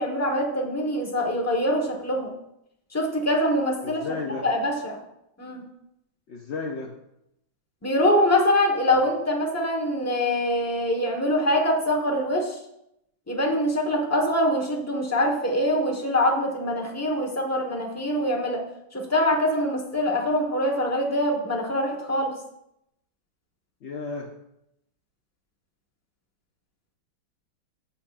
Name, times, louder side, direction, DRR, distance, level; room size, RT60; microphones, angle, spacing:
voice 1, 0.0-2.3 2.9-4.0 4.4-5.0 5.4-5.6 7.8-12.6 13.3-18.7 18.9-22.4, left 1 dB, 10° left, 0 dB, 1.0 m, -24 dB
voice 2, 3.8-4.5 6.3-6.9 23.8-24.3, left 4 dB, 75° left, 1 dB, 0.6 m, -33 dB
15.5 x 5.7 x 2.5 m, 0.81 s
omnidirectional pair, 2.2 m